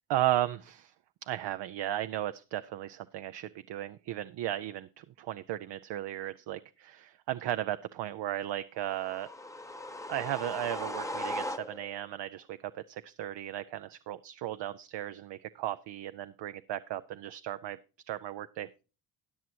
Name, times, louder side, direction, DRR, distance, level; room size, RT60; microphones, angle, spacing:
voice 1, 0.1-0.9 1.3-9.3 10.1-17.8 18.1-18.7, right 13 dB, 65° right, 11 dB, 0.6 m, -35 dB
sound 1, 8.9-12.1, left 1 dB, 5° left, 0.8 m, -38 dB
14.0 x 9.2 x 2.8 m, 0.33 s
supercardioid pair, 65°, 47 cm